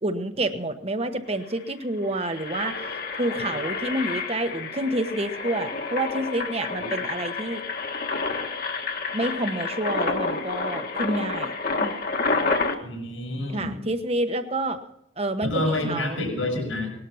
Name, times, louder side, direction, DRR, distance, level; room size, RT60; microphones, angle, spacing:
voice 1, 0.0-2.7 3.2-7.6 9.1-11.5 11.8-11.9 13.5-14.8 15.2-16.2, right 1 dB, 30° right, 8 dB, 1.1 m, -28 dB
Engine, 1.0-1.1 1.4-1.6 2.0-12.7, left 4 dB, 50° left, 1.6 m, -29 dB
voice 2, 12.8-13.8 15.4-16.9, left 1 dB, 90° left, 1 dB, 6.8 m, -28 dB
19.5 x 12.0 x 5.6 m, 0.75 s
head